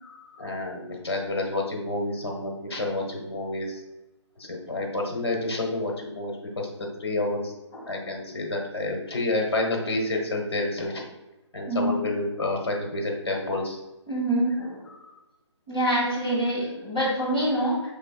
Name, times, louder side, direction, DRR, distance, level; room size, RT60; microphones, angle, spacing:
voice 1, 0.0-3.8 4.4-6.7 7.0-7.5 7.9-11.0 11.5-13.8 14.9-15.1, left 2 dB, 55° left, 1 dB, 1.1 m, -29 dB
voice 2, 11.7-12.0 14.1-14.9 15.7-17.9, right 1 dB, 5° right, -12 dB, 0.5 m, -26 dB
5.2 x 3.7 x 2.3 m, 1.0 s
hypercardioid pair, 180°, 15 cm